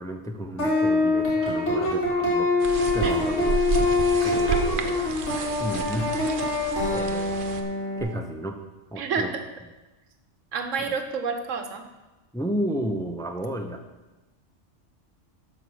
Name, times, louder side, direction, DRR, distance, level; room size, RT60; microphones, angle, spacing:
voice 1, 0.0-2.7 2.9-3.6 4.2-5.0 5.6-6.5 6.9-7.4 8.0-8.6 8.9-9.3 10.8-10.9 12.3-13.8, equal, 5° left, 4 dB, 0.6 m, -32 dB
sound 1, 0.6-8.0, left 2 dB, 65° left, 3.1 m, -24 dB
sound 2, 2.6-7.6, right 4 dB, 50° right, 0.8 m, -31 dB
voice 2, 9.0-9.4 10.5-11.8, right 5 dB, 90° right, 7 dB, 1.3 m, -29 dB
12.5 x 5.0 x 6.2 m, 1.1 s
omnidirectional pair, 1.3 m